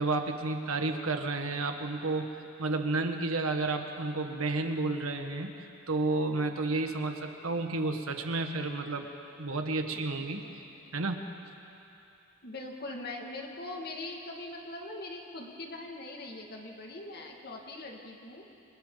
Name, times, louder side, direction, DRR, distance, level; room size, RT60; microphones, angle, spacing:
voice 1, 0.0-5.5 5.9-9.1 9.4-10.4 10.9-11.2, right 3 dB, 90° right, 5 dB, 1.6 m, -31 dB
voice 2, 12.4-18.4, left 2 dB, 50° left, 1 dB, 2.3 m, -41 dB
29.5 x 26.0 x 4.1 m, 2.8 s
head